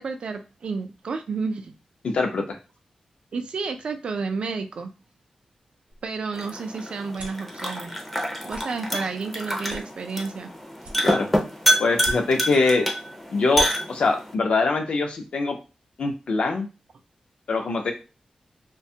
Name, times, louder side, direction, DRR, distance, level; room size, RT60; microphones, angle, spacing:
voice 1, 0.0-1.7 3.3-4.9 6.0-8.0 8.4-10.5, right 4 dB, 55° right, 6 dB, 0.3 m, -31 dB
voice 2, 2.0-2.6 11.0-11.3 11.8-12.9 13.3-15.6 16.0-16.7 17.5-17.9, left 3 dB, 65° left, 3 dB, 0.5 m, -23 dB
sound 1, 5.9-7.5 8.0-8.2 8.4-8.6 9.1-9.2 9.6-10.4 10.8-11.5 11.9-12.6 13.0-13.1 13.4-13.7, right 2 dB, 85° right, 0.7 m, -39 dB
sound 2, 6.3-14.3, equal, 5° left, 0.4 m, -27 dB
2.5 x 2.2 x 2.7 m, 0.31 s
wide cardioid pair, 175°, 2 cm